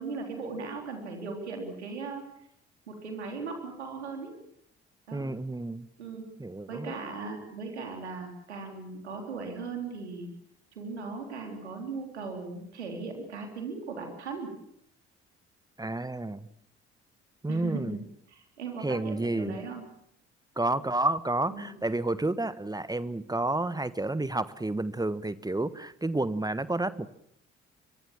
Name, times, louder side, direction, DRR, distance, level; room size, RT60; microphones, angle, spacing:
voice 1, 0.0-2.3 2.9-4.3 5.1-5.3 6.0-10.3 10.7-14.6 17.5-18.0 18.3-19.8 21.5-21.7, right 4 dB, 80° right, 3 dB, 3.8 m, -38 dB
voice 2, 5.1-5.9 6.4-6.9 15.8-16.5 17.4-18.0 18.8-19.5 20.6-27.1, right 2 dB, 10° right, 15 dB, 1.5 m, -30 dB
24.0 x 23.5 x 7.2 m, 0.74 s
figure-of-eight pair, 45°, 33 cm